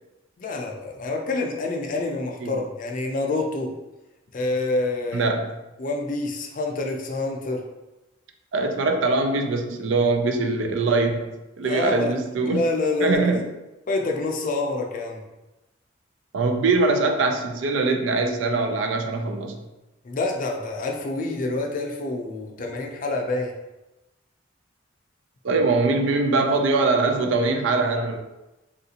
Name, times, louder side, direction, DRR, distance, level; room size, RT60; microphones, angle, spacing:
voice 1, 0.4-3.7 4.3-5.3 5.8-7.6 11.6-12.1 12.4-13.4 13.9-15.2 20.0-23.5, left 2 dB, 45° left, 2 dB, 0.5 m, -27 dB
voice 2, 5.1-5.5 8.5-11.3 11.6-12.6 13.0-13.4 16.3-19.6 25.4-28.2, right 3 dB, 80° right, 5 dB, 0.4 m, -22 dB
3.5 x 2.4 x 2.8 m, 1.0 s
head